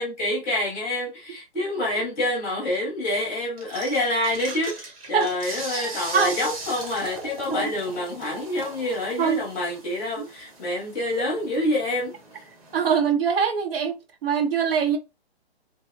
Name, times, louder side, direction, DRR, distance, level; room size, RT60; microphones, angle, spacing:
voice 1, 0.0-12.1, left 1 dB, 15° left, 0.7 m, -27 dB
sound 1, 3.6-12.8, right 3 dB, 35° right, 0.9 m, -39 dB
voice 2, 12.7-14.0 14.2-15.0, right 7 dB, 60° right, 0.6 m, -22 dB
2.8 x 2.0 x 2.5 m
hypercardioid pair, 155°, 33 cm